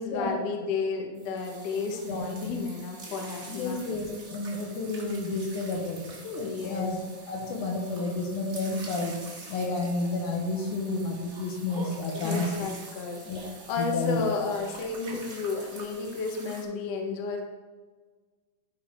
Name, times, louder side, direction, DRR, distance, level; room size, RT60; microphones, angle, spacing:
voice 1, 0.0-3.8 6.4-6.9 12.1-13.3 13.7-17.4, left 4 dB, 65° left, 2 dB, 1.9 m, -32 dB
sound 1, 1.1-16.6, right 3 dB, 40° right, 1.1 m, -45 dB
voice 2, 2.1-2.6 3.5-7.0 7.3-12.7 13.2-13.4 13.8-14.2, left 3 dB, 80° left, 1 dB, 2.6 m, -31 dB
12.0 x 4.8 x 4.4 m, 1.4 s
omnidirectional pair, 3.5 m